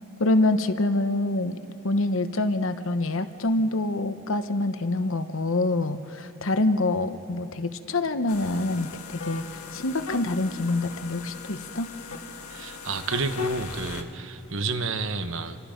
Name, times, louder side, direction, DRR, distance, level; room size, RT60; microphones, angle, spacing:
voice 1, 0.2-1.6 1.8-11.9, left 2 dB, 60° left, 10 dB, 1.0 m, -26 dB
sound 1, 8.3-14.0, left 4 dB, 80° left, 1.7 m, -39 dB
voice 2, 12.5-15.6, right 3 dB, 60° right, 9 dB, 1.2 m, -30 dB
29.0 x 25.5 x 5.2 m, 2.7 s
head